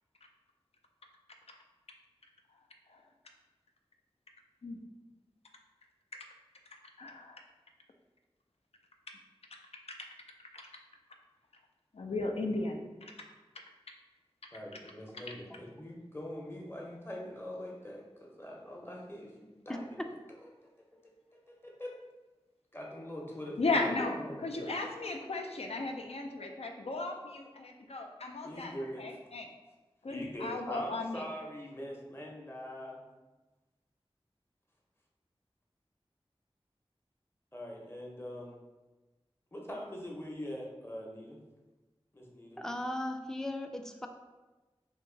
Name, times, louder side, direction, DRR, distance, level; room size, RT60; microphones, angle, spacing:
voice 1, 7.0-7.4 10.5-10.6 11.9-12.8 13.1-13.2 23.6-28.7 29.0-29.5 30.0-31.2, left 2 dB, 85° left, 3 dB, 0.4 m, -35 dB
voice 2, 14.5-19.8 20.4-20.7 21.0-21.1 21.6-21.9 22.7-24.7 28.4-29.2 30.1-33.0 37.5-38.6 39.5-41.4 42.1-42.6, equal, 25° left, -2 dB, 0.7 m, -43 dB
voice 3, 42.6-44.1, left 1 dB, 5° left, 4 dB, 0.3 m, -37 dB
2.9 x 2.6 x 3.7 m, 1.2 s
wide cardioid pair, 55°, 10 cm